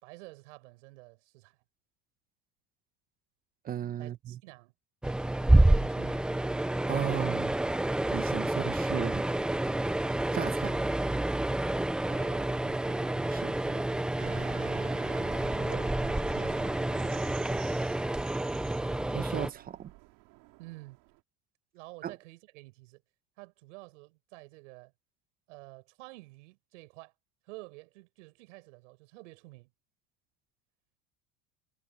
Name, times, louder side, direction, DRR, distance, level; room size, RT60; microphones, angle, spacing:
voice 1, 0.0-1.6 4.0-4.7 5.6-6.3 12.1-14.1 14.7-17.0 20.6-21.0 21.7-23.0 23.4-24.9 25.5-27.1 27.4-29.7, right 23 dB, 85° right, 5.6 m, -50 dB
voice 2, 3.6-4.4 6.9-7.6 8.1-9.2 10.3-10.7 13.3-13.5 19.1-19.9 22.0-22.1, right 10 dB, 25° right, 0.8 m, -35 dB
sound 1, 5.0-19.5, right 1 dB, 5° right, 0.3 m, -28 dB
sound 2, 14.2-21.2, right 23 dB, 60° right, 4.1 m, -48 dB
cardioid pair, 150°, 36 cm